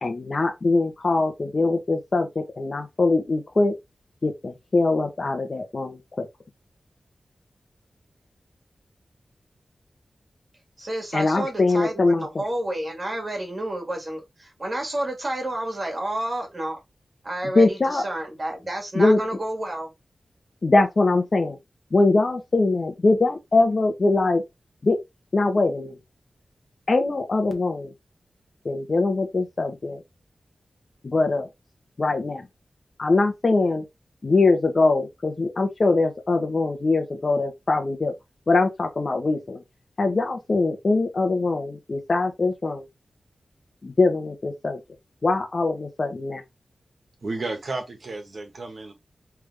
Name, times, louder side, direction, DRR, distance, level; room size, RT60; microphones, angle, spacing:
voice 1, 0.0-3.7 4.2-6.3 11.1-12.2 17.5-18.0 18.9-19.2 20.6-21.6 21.9-24.4 24.8-25.0 25.3-26.0 26.9-27.9 28.6-30.0 31.0-31.5 32.0-32.4 33.0-33.8 34.2-38.1 38.5-39.6 40.0-42.8 43.8-44.8 45.2-46.4, left 3 dB, 45° left, 1.0 m, -22 dB
voice 2, 10.8-16.8 17.2-19.9, right 1 dB, 35° right, 1.9 m, -30 dB
voice 3, 47.2-48.9, right 2 dB, 60° right, 1.5 m, -32 dB
3.5 x 3.4 x 3.4 m
wide cardioid pair, 115°, 0 cm